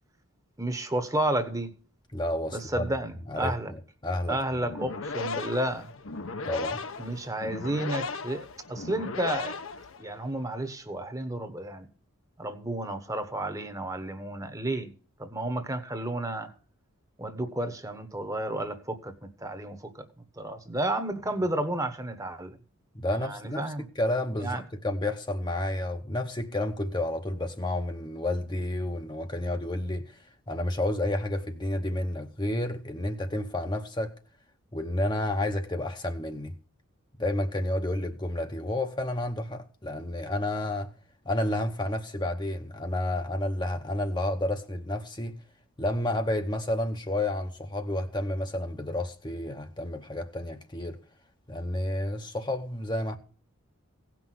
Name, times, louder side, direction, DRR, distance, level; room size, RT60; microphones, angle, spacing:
voice 1, 0.6-1.7 2.5-3.7 4.3-5.9 7.0-9.6 10.0-11.9 12.4-14.9 15.2-16.5 17.2-20.1 20.4-22.6 23.1-23.9 24.4-24.6, right 1 dB, 15° right, 1.1 m, -32 dB
voice 2, 2.1-2.9 3.3-4.7 6.4-6.8 22.9-23.6 24.0-30.2 30.5-34.1 34.7-36.5 37.2-40.9 41.2-45.4 45.8-51.0 51.5-53.2, left 1 dB, 20° left, 0.9 m, -30 dB
sound 1, 4.7-10.3, left 3 dB, 65° left, 1.0 m, -36 dB
17.0 x 6.1 x 7.7 m
head